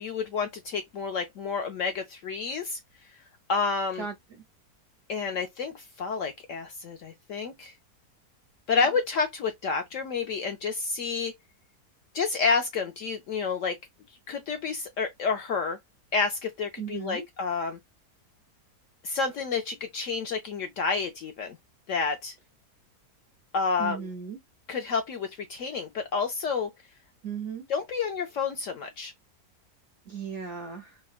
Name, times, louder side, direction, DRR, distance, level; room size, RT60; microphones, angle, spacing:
voice 1, 0.0-2.8 3.5-4.1 5.1-7.7 8.7-11.3 12.1-13.8 14.3-15.8 16.1-17.8 19.0-21.6 21.9-22.3 23.5-24.0 24.7-26.7 27.7-29.1, left 5 dB, 70° left, 0.8 m, -29 dB
voice 2, 16.8-17.2 23.8-24.4 27.2-27.7 30.1-31.0, right 7 dB, 70° right, 0.7 m, -36 dB
3.7 x 2.1 x 2.3 m
omnidirectional pair, 1.8 m